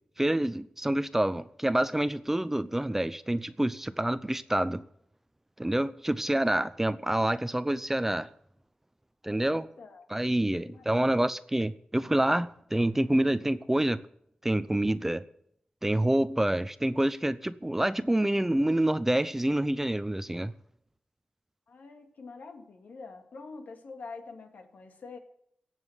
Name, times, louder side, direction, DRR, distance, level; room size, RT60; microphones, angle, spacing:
voice 1, 0.2-4.8 5.6-8.3 9.2-9.7 10.1-14.0 14.4-15.2 15.8-20.5, right 1 dB, 10° right, 0.7 m, -27 dB
voice 2, 9.3-10.1 10.6-11.1 21.7-25.2, left 4 dB, 80° left, 2.3 m, -46 dB
17.5 x 7.4 x 8.1 m
wide cardioid pair, 105°, 3 cm